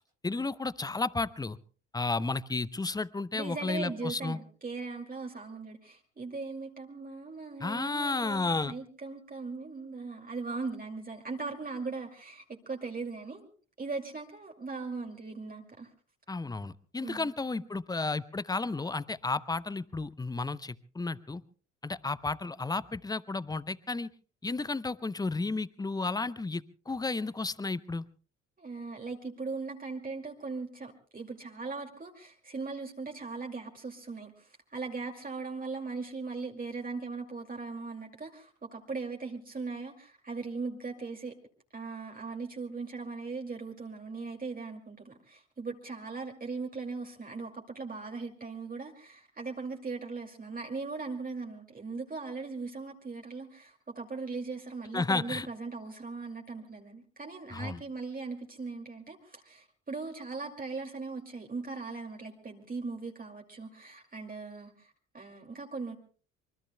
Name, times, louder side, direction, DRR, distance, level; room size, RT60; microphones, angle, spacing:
voice 1, 0.2-1.6 1.9-4.4 7.6-8.7 16.3-21.4 21.8-24.1 24.4-28.0 54.9-55.5 57.5-57.8, left 3 dB, 10° left, 19 dB, 0.7 m, -32 dB
voice 2, 3.3-13.5 13.8-15.9 17.0-17.3 28.6-41.3 41.7-65.9, right 4 dB, 25° right, 2 dB, 2.4 m, -39 dB
26.0 x 23.5 x 2.2 m, 0.40 s
figure-of-eight pair, 55°, 36 cm